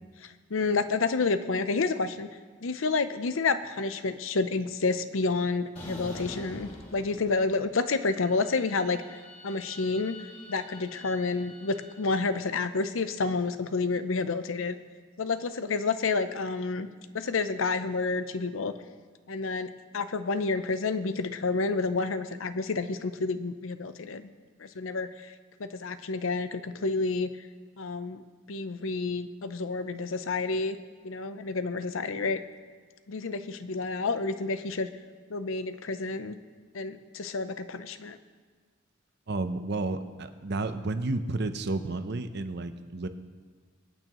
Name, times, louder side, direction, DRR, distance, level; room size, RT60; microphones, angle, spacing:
voice 1, 0.5-2.3 2.6-9.2 9.4-10.2 10.5-14.8 15.2-16.9 17.1-18.7 19.3-24.3 24.6-25.3 25.6-27.3 27.8-28.2 28.5-30.8 31.0-32.4 33.1-34.9 35.3-36.4 36.7-38.2, left 3 dB, 80° left, 11 dB, 0.7 m, -29 dB
sound 1, 5.8-7.7 8.0-12.3, left 1 dB, 35° left, 3.0 m, -46 dB
voice 2, 39.3-43.1, right 2 dB, 55° right, 9 dB, 0.7 m, -31 dB
24.0 x 9.0 x 3.1 m, 1.5 s
head